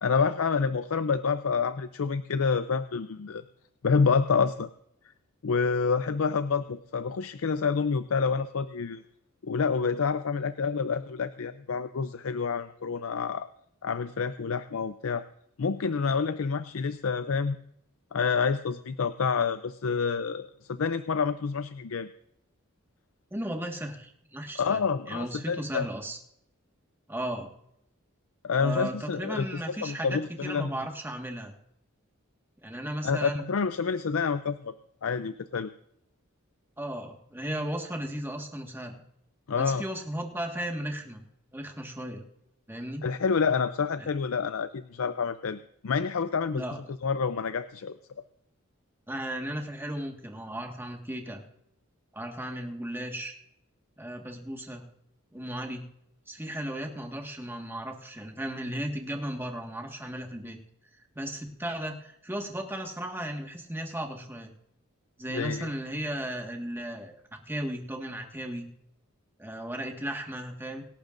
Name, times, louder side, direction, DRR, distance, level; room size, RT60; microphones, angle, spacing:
voice 1, 0.0-3.4 3.8-4.7 5.4-9.0 9.4-13.5 13.8-15.2 15.6-17.6 18.1-22.1 24.6-25.9 28.4-30.7 33.0-34.7 35.0-35.7 39.5-39.8 43.0-46.6 47.0-47.9 65.3-65.7, left 5 dB, 80° left, 11 dB, 0.5 m, -28 dB
voice 2, 23.3-26.2 27.1-27.5 28.6-31.5 32.6-33.4 36.8-39.0 39.6-41.2 41.5-42.2 42.7-43.0 44.0-44.1 46.5-46.8 49.1-51.4 52.1-53.3 54.0-54.8 55.3-55.8 56.3-60.6 61.1-64.5 65.2-68.7 69.4-70.8, right 1 dB, 10° right, 2 dB, 1.7 m, -35 dB
25.5 x 11.5 x 2.6 m, 0.75 s
head